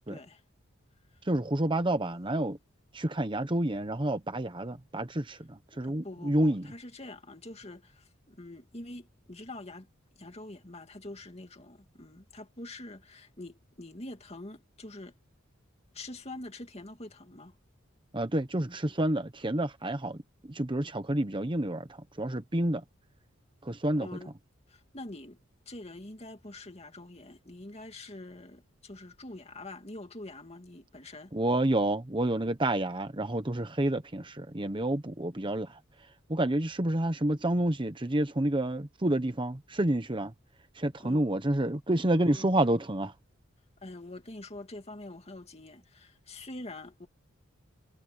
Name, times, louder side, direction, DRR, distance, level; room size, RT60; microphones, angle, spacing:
voice 1, 0.1-0.4 5.8-9.9 10.2-15.2 15.9-17.5 24.0-24.3 24.7-25.4 25.7-31.3 41.0-41.2 41.9-42.5 43.8-47.1, left 2 dB, 30° left, 2.4 m, -45 dB
voice 2, 1.2-2.6 2.9-6.7 18.1-22.8 23.6-24.1 31.3-40.3 40.7-43.1, right 1 dB, 25° right, 1.0 m, -29 dB
head